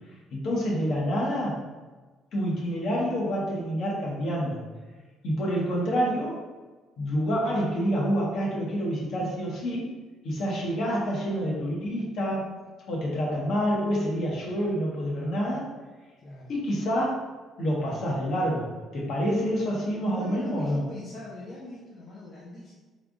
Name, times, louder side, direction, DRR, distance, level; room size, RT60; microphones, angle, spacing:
voice 1, 0.3-1.6 2.3-4.6 5.2-6.4 7.0-9.9 10.2-12.5 12.9-15.7 16.5-17.3 17.6-20.9, equal, 60° left, -4 dB, 1.1 m, -27 dB
voice 2, 16.2-16.5 20.1-22.7, left 2 dB, 40° left, -5 dB, 0.7 m, -41 dB
3.3 x 2.4 x 3.7 m, 1.3 s
cardioid pair, 110°, 0 cm